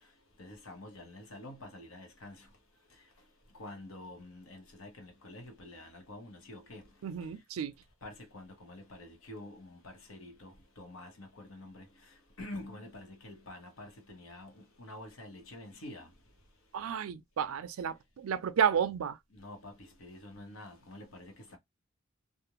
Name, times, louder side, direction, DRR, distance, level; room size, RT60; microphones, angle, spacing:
voice 1, 0.4-2.5 3.6-6.9 8.0-11.9 12.4-16.1 19.3-21.6, left 1 dB, 90° left, 0.9 m, -48 dB
voice 2, 7.0-7.7 16.7-19.2, right 7 dB, 90° right, 0.4 m, -31 dB
2.5 x 2.1 x 2.9 m
head